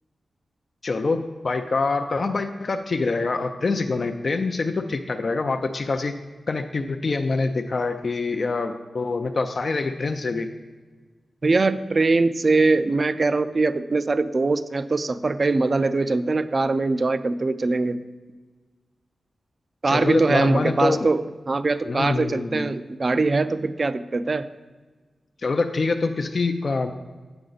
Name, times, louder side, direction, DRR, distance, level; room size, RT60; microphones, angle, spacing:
voice 1, 0.8-6.2 6.5-10.5 19.9-21.1 21.8-22.7 25.4-26.9, left 3 dB, 50° left, 5 dB, 0.4 m, -25 dB
voice 2, 11.4-18.0 19.8-21.2 21.5-24.5, right 3 dB, 40° right, 13 dB, 0.3 m, -22 dB
7.8 x 6.0 x 3.9 m, 1.4 s
wide cardioid pair, 90°, 0 cm